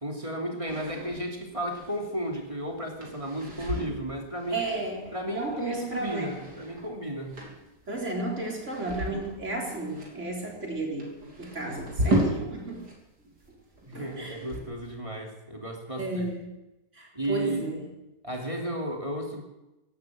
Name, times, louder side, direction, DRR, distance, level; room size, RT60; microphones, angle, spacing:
voice 1, 0.0-4.6 5.1-7.4 13.9-16.2 17.1-17.6 18.2-19.4, right 1 dB, 20° right, 1 dB, 2.8 m, -34 dB
sound 1, 0.7-13.0 13.2-14.9, right 1 dB, 70° right, 4.1 m, -35 dB
voice 2, 4.5-6.5 7.9-12.8 13.9-14.4 16.0-16.6 16.9-17.9, right 2 dB, 40° right, -1 dB, 4.3 m, -33 dB
16.5 x 12.0 x 7.4 m, 0.98 s
omnidirectional pair, 1.8 m